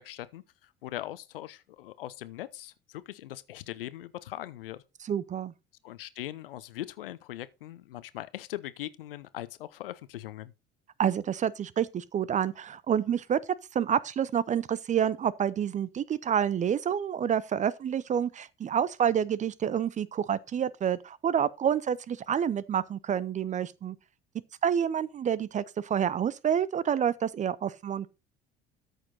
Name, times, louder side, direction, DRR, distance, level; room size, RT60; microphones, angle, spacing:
voice 1, 0.0-4.8 5.8-10.5, left 14 dB, 70° left, 0.8 m, -40 dB
voice 2, 5.1-5.5 11.0-13.4 13.7-24.0 24.6-28.1, right 8 dB, 25° right, 0.5 m, -28 dB
13.0 x 6.4 x 4.0 m
figure-of-eight pair, 65°, 29 cm